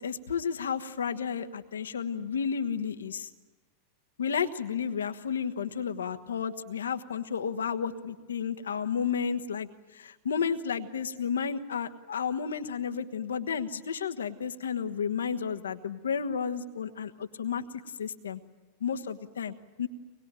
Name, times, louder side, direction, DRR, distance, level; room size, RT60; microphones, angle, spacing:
voice 1, 0.0-3.3 4.2-18.4 18.8-19.9, left 7 dB, 80° left, 8 dB, 1.3 m, -32 dB
24.5 x 21.0 x 9.0 m, 1.3 s
hypercardioid pair, 95°, 0 cm